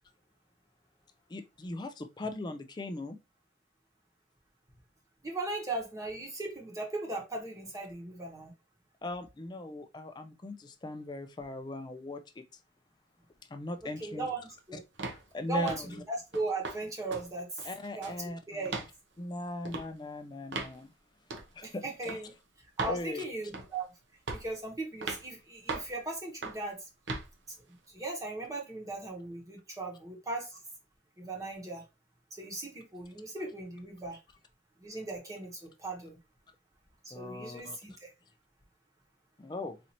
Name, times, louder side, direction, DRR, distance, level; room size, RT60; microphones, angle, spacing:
voice 1, 1.3-3.2 9.0-12.4 13.5-14.3 14.7-14.8 15.1-16.0 17.6-18.8 19.2-20.9 21.5-22.2 22.9-23.2 37.1-37.8 39.4-39.8, left 2 dB, 25° left, 0.3 m, -39 dB
voice 2, 5.2-8.5 14.0-14.4 14.7-14.8 15.5-17.5 18.0-18.7 21.6-22.3 22.8-23.9 24.3-26.8 27.9-30.6 31.2-31.8 32.4-34.2 34.8-36.2 37.0-38.1, right 2 dB, 20° right, 1.0 m, -38 dB
sound 1, 15.0-15.2 15.7-15.9 16.3-16.8 17.1-17.3 17.6-18.2 18.7-18.9 19.7-19.9 20.5-20.8 21.3-21.5 22.1-22.2 22.8-23.0 23.5-23.8 24.3-24.5 25.0-25.2 25.7-25.9 26.4-26.6 27.1-27.3, right 3 dB, 85° right, 0.8 m, -37 dB
4.1 x 2.6 x 2.8 m
head